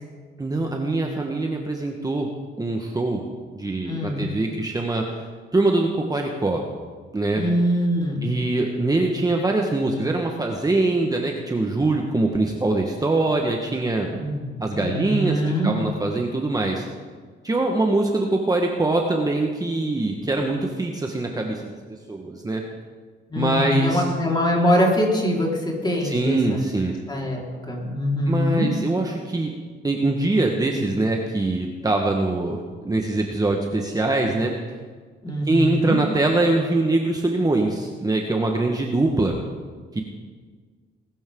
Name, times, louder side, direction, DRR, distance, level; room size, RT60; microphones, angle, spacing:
voice 1, 0.4-2.3 2.6-3.2 3.5-5.0 5.5-6.6 7.1-7.4 8.2-14.1 14.6-16.8 17.4-22.6 23.3-24.0 26.0-26.9 28.3-29.5 29.8-34.5 35.4-39.4 39.9-40.0, right 2 dB, 20° right, 1 dB, 1.4 m, -23 dB
voice 2, 3.9-4.2 7.3-8.3 14.1-14.5 14.8-15.7 23.3-26.6 27.1-27.4 27.7-28.7 35.2-36.0, left 1 dB, 20° left, -3 dB, 4.5 m, -23 dB
21.0 x 12.5 x 3.8 m, 1.5 s
cardioid pair, 90°, 20 cm